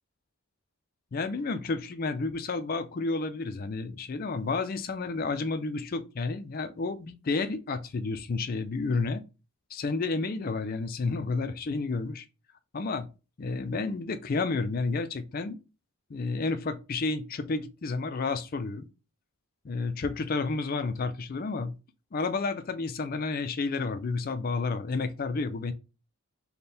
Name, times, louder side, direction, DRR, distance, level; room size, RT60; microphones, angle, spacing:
voice 1, 1.1-9.2 9.7-12.2 12.7-13.1 13.4-15.6 16.1-18.9 19.6-21.7 22.1-25.7, left 3 dB, 40° left, 0.4 m, -31 dB
4.3 x 2.2 x 3.4 m
head